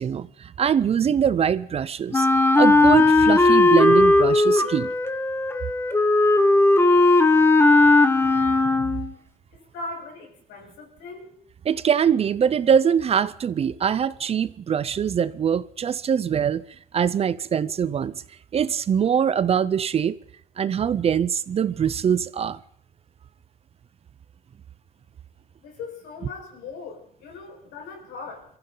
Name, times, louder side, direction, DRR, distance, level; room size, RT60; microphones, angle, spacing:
voice 1, 0.0-2.3 2.6-4.9 8.8-8.9 11.7-16.6 16.9-18.2 18.5-20.2 20.6-22.6, right 8 dB, 35° right, 0.5 m, -23 dB
Wind instrument woodwind instrument, 2.1-9.1, left 2 dB, 15° left, 1.3 m, -17 dB
voice 2, 9.5-11.3 25.6-28.5, left 3 dB, 80° left, 5.2 m, -39 dB
23.5 x 15.0 x 3.9 m
cardioid pair, 110°, 17 cm